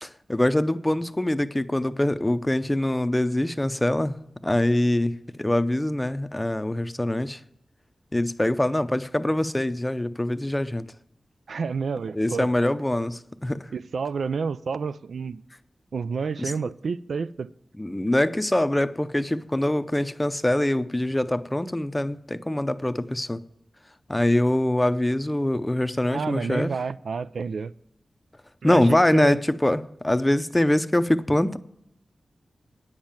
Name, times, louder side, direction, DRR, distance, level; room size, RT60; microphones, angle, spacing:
voice 1, 0.0-7.4 8.1-10.9 12.1-13.6 16.4-16.5 17.8-23.4 24.1-26.7 28.6-31.6, left 1 dB, 15° left, 0.6 m, -24 dB
voice 2, 11.5-12.5 13.7-15.4 15.9-17.5 26.1-27.7 28.6-29.4, right 5 dB, 85° right, 0.3 m, -29 dB
9.5 x 7.3 x 8.8 m
wide cardioid pair, 75°, 0 cm